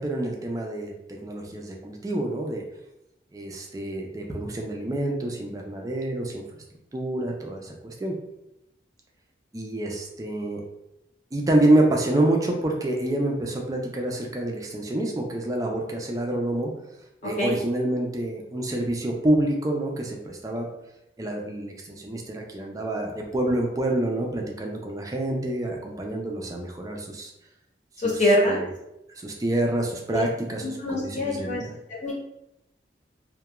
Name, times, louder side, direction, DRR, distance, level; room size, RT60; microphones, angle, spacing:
voice 1, 0.0-2.6 3.3-6.4 6.9-8.1 9.5-10.6 11.3-16.7 17.2-20.7 21.2-27.3 28.0-28.7 29.2-31.7, right 1 dB, 20° right, 1 dB, 0.3 m, -27 dB
voice 2, 28.0-28.6 30.1-30.2 30.8-31.6 32.0-32.1, left 1 dB, 40° left, -4 dB, 0.8 m, -23 dB
2.3 x 2.1 x 2.9 m, 0.86 s
head